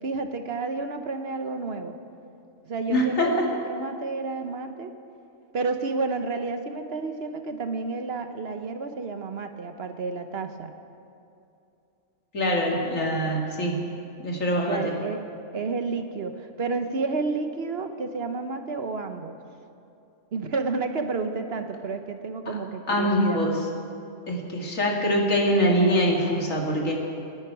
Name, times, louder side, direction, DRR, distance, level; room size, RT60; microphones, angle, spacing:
voice 1, 0.0-2.0 2.6-3.3 3.7-4.9 5.5-10.7 14.5-15.2 15.5-19.3 20.3-23.4, right 4 dB, 55° right, 7 dB, 1.1 m, -30 dB
voice 2, 2.9-3.5 12.3-13.8 14.2-14.9 22.5-22.6 22.9-23.5 24.3-26.9, equal, 85° left, -1 dB, 2.6 m, -24 dB
26.5 x 10.0 x 4.7 m, 2.6 s
omnidirectional pair, 1.3 m